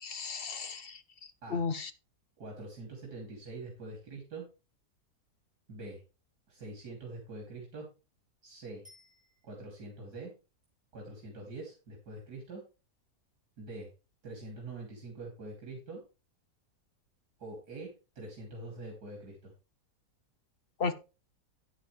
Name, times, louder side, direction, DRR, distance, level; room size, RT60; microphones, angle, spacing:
voice 1, 0.0-1.0 1.5-1.9 20.8-20.9, left 4 dB, 50° left, 12 dB, 0.8 m, -34 dB
voice 2, 2.4-4.5 5.7-6.0 6.5-7.9 8.4-8.8 9.4-10.3 10.9-12.6 13.6-13.9 14.2-16.0 17.4-19.5, right 2 dB, 80° right, 0 dB, 3.4 m, -44 dB
Bicycle bell, 8.8-10.0 19.0-19.1, left 3 dB, 5° right, 5.4 m, -61 dB
9.9 x 9.7 x 3.2 m, 0.31 s
omnidirectional pair, 1.7 m